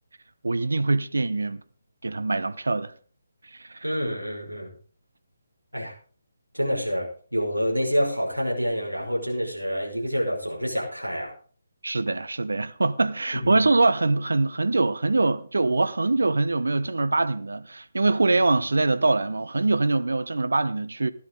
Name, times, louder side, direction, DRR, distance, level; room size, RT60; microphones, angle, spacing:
voice 1, 0.4-1.6 2.0-2.9 3.6-3.8 11.8-21.1, right 3 dB, 70° right, 0.9 m, -23 dB
voice 2, 3.8-4.7 5.7-5.9 6.5-11.3 13.4-13.6, equal, 90° right, 5.8 m, -27 dB
16.5 x 11.5 x 4.0 m
figure-of-eight pair, 145°, 0 cm